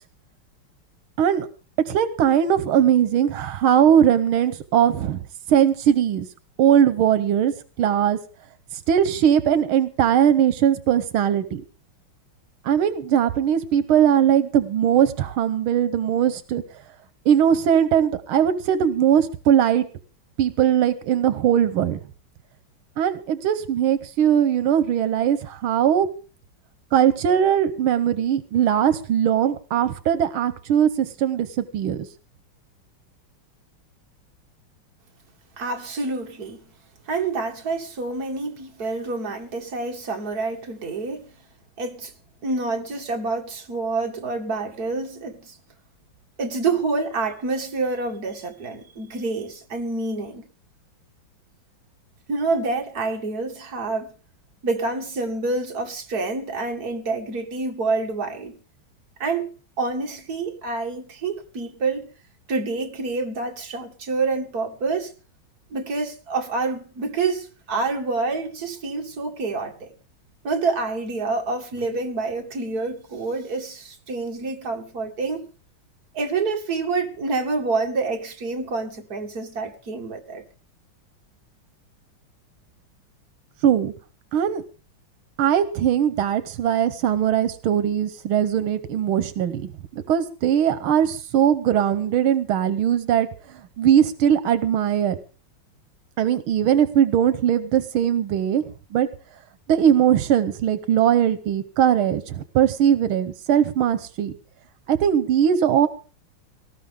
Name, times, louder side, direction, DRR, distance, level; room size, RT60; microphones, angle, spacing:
voice 1, 1.9-5.2 5.5-6.3 6.6-8.2 8.9-11.6 12.6-16.6 17.3-19.9 20.4-22.0 23.0-26.1 26.9-32.1 83.6-83.9 84.3-84.6 85.4-89.6 89.9-93.3 93.8-95.2 96.2-98.6 98.9-99.1 99.7-104.3 104.9-105.9, right 9 dB, 85° right, 1.8 m, -20 dB
voice 2, 35.6-36.6 37.1-41.3 41.8-42.1 42.4-45.6 46.4-50.4 52.3-54.1 54.6-58.6 59.2-59.5 59.8-62.1 62.5-65.1 65.7-69.9 70.4-75.5 76.1-80.4, right 3 dB, 50° right, 2.5 m, -27 dB
18.5 x 14.5 x 3.7 m
omnidirectional pair, 2.2 m